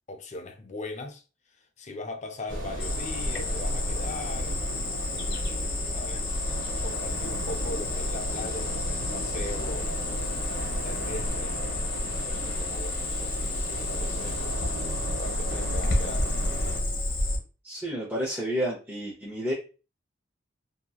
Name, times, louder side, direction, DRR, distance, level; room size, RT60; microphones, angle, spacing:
voice 1, 0.1-1.2 1.6-4.6 5.3-6.3 6.8-9.9 10.8-11.6 12.1-13.4 13.7-14.5 15.2-16.3, left 2 dB, 35° left, 0.4 m, -40 dB
sound 1, 2.5-16.8, equal, 75° right, 1.1 m, -33 dB
Cricket, 2.8-17.4, left 2 dB, 55° left, 1.0 m, -31 dB
voice 2, 17.6-19.5, equal, 10° right, 0.7 m, -30 dB
2.9 x 2.7 x 2.3 m
head